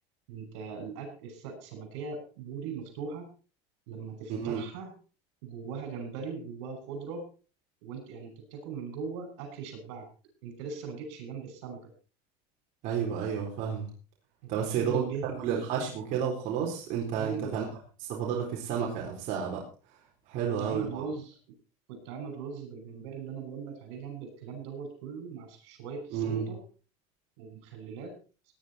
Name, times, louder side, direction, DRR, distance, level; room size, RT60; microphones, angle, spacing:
voice 1, 0.3-3.3 3.9-4.9 5.4-7.2 7.8-10.1 10.4-11.9 14.4-15.5 17.2-17.7 20.3-21.4 21.9-26.6 27.4-28.1, right 5 dB, 85° right, 6 dB, 6.4 m, -40 dB
voice 2, 4.3-4.6 12.8-13.9 14.5-17.6 18.0-19.6 20.3-21.0 26.1-26.5, right 7 dB, 60° right, -1 dB, 4.1 m, -31 dB
18.5 x 10.5 x 4.3 m, 0.36 s
cardioid pair, 135°, 14 cm